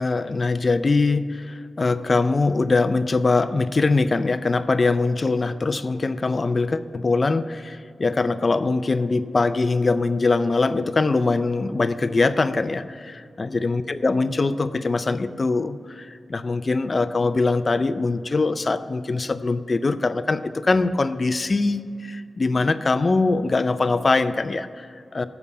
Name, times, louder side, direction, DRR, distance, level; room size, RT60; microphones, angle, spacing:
voice 1, 0.0-25.3, left 3 dB, 30° left, 12 dB, 0.4 m, -22 dB
7.3 x 6.8 x 8.1 m, 2.4 s
wide cardioid pair, 170°, 0 cm